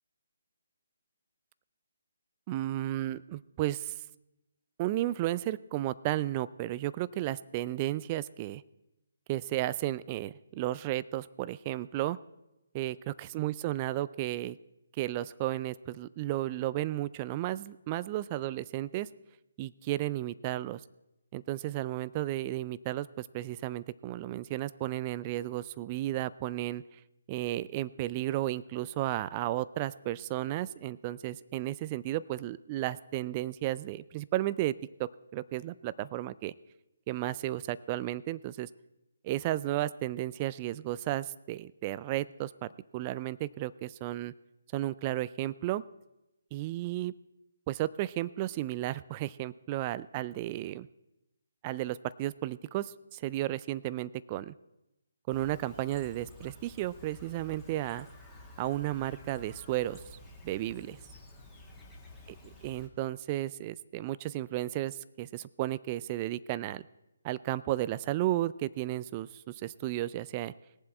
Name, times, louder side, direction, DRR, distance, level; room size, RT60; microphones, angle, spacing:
voice 1, 2.5-3.9 4.8-8.6 9.3-12.2 12.7-14.6 15.0-19.1 19.6-20.8 21.3-27.0 27.3-36.5 37.1-38.7 39.2-44.3 44.7-45.8 46.5-47.1 47.7-50.9 51.6-54.5 55.3-58.1 58.6-60.0 60.4-61.0 62.6-66.8 67.2-70.5, right 15 dB, 25° right, 18 dB, 0.3 m, -33 dB
Chirp tweet, 55.3-62.9, left 2 dB, 10° left, 1.8 m, -51 dB
20.0 x 7.5 x 4.3 m, 0.94 s
figure-of-eight pair, 145°, 0 cm